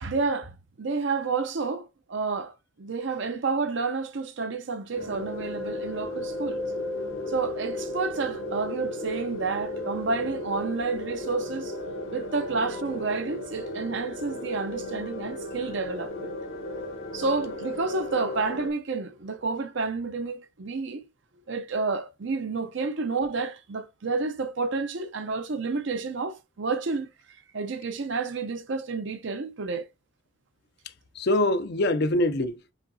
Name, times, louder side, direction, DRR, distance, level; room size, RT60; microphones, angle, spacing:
voice 1, 0.0-6.6 7.3-11.8 12.1-16.3 17.1-21.0 21.5-27.1 27.5-29.9, right 4 dB, 65° right, 0.6 m, -30 dB
sound 1, 4.9-18.7, left 1 dB, 75° left, 0.9 m, -35 dB
voice 2, 30.8-32.7, left 1 dB, 55° left, 0.5 m, -25 dB
4.9 x 3.2 x 2.6 m
head